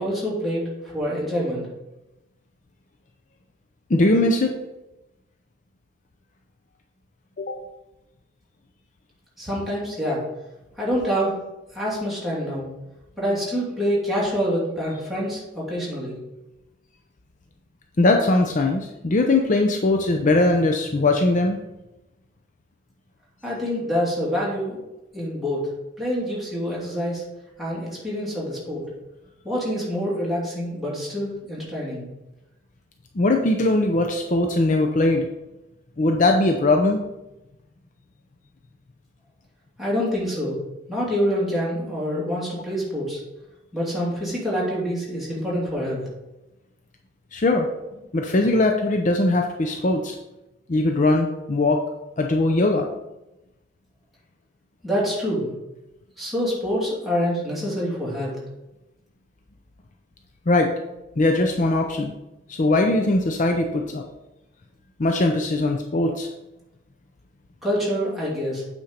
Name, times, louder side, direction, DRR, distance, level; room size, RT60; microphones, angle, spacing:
voice 1, 0.0-1.7 9.4-10.2 10.8-11.3 11.7-12.7 13.2-16.2 23.4-24.8 25.1-25.7 26.0-27.2 27.6-28.8 29.4-32.1 39.8-40.6 40.9-43.2 43.7-46.0 54.8-55.5 56.2-58.3 67.6-68.6, equal, ahead, -7 dB, 2.8 m, -26 dB
voice 2, 3.9-4.6 7.4-7.6 18.0-21.6 33.2-35.3 36.0-37.0 47.3-47.7 48.1-50.2 50.7-51.8 52.2-52.9 60.5-60.7 61.2-62.1 62.5-64.0 65.0-66.3, left 2 dB, 45° left, 3 dB, 0.6 m, -20 dB
8.6 x 4.4 x 5.1 m, 0.96 s
head